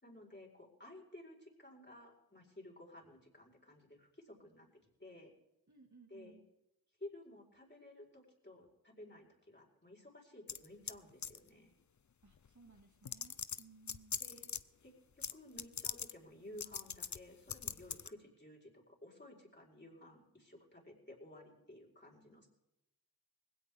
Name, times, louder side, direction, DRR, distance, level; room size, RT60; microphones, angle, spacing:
voice 1, 0.0-5.3 6.1-6.4 7.0-11.7 14.2-14.5 14.8-22.5, left 1 dB, 30° left, -2 dB, 4.5 m, -55 dB
voice 2, 5.7-6.5 12.2-14.2, right 4 dB, 50° right, 2 dB, 2.1 m, -61 dB
sound 1, 10.5-11.0 11.2-11.5 12.5-12.6 13.0-14.6 15.2-15.3 15.6-16.1 16.6-17.2 17.5-18.1, left 7 dB, 50° left, 0.6 m, -41 dB
20.0 x 16.5 x 3.5 m, 0.92 s
wide cardioid pair, 40°, 37 cm